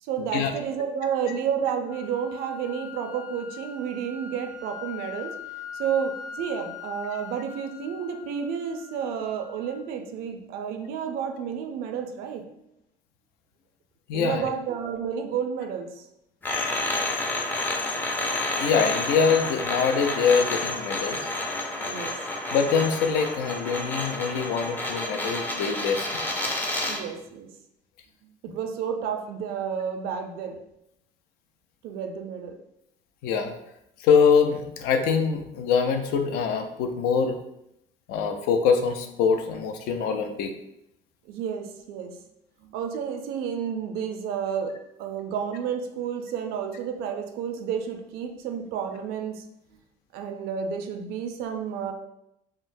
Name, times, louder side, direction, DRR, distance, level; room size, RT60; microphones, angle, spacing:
voice 1, 0.0-5.4 5.8-12.4 14.1-16.1 21.8-22.2 26.9-27.5 28.4-30.6 31.8-32.6 41.3-42.2 42.6-49.4 50.1-51.9, right 7 dB, 70° right, 6 dB, 0.4 m, -31 dB
sound 1, 1.9-9.9, left 6 dB, 50° left, 0.9 m, -42 dB
voice 2, 14.1-14.5 18.6-21.3 22.5-26.1 33.2-33.5 34.0-37.4 38.1-40.5, left 6 dB, 75° left, 7 dB, 0.4 m, -24 dB
sound 2, 16.4-27.1, left 2 dB, 10° left, 0.4 m, -30 dB
3.7 x 2.0 x 2.5 m, 0.81 s
cardioid pair, 125°, 16 cm